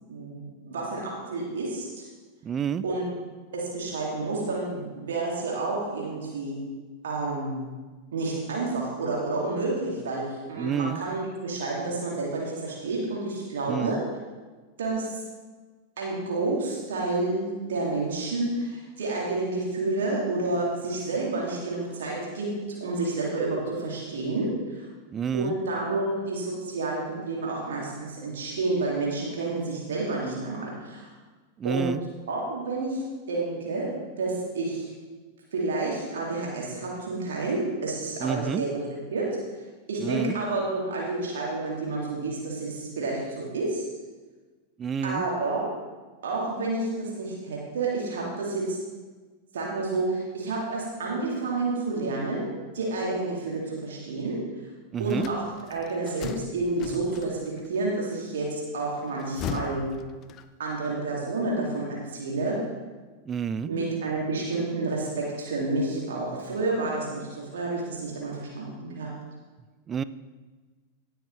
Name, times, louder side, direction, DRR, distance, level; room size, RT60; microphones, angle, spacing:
voice 1, 0.1-2.0 2.8-3.1 3.5-6.6 7.0-7.6 8.1-14.0 14.8-15.2 16.0-24.9 25.3-31.1 31.6-31.9 32.3-33.0 33.3-33.9 34.2-34.9 35.5-38.8 39.1-39.3 39.9-43.8 45.0-45.6 46.2-48.8 49.5-52.5 52.7-54.4 55.0-55.4 55.7-59.9 60.6-62.6 63.7-69.1, right 3 dB, 60° right, -3 dB, 2.4 m, -29 dB
voice 2, 2.4-2.8 10.6-11.0 13.7-14.0 25.1-25.5 31.6-32.0 38.2-38.6 40.0-40.4 44.8-45.2 54.9-55.3 63.3-63.7 69.9-70.0, right 7 dB, 25° right, 15 dB, 0.3 m, -29 dB
sound 1, 55.1-57.7 59.0-60.8, left 8 dB, 35° left, 0.5 m, -38 dB
17.5 x 6.4 x 3.3 m, 1.3 s
figure-of-eight pair, 90°, 0 cm